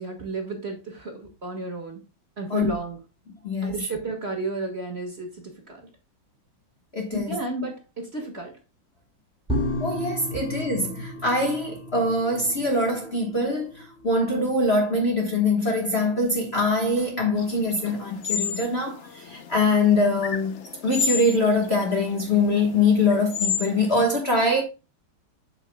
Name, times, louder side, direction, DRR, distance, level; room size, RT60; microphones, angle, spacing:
voice 1, 0.0-2.0 2.4-3.0 3.6-5.9 7.1-8.6 10.3-10.4, right 3 dB, 35° right, 1.8 m, -33 dB
voice 2, 6.9-7.4 9.8-24.6, left 2 dB, 35° left, 1.3 m, -23 dB
sound 1, 9.5-16.7 16.9-17.0, left 1 dB, ahead, 3.2 m, -34 dB
sound 2, 17.4-23.9, left 7 dB, 85° left, 0.6 m, -32 dB
8.1 x 7.2 x 2.2 m
omnidirectional pair, 2.2 m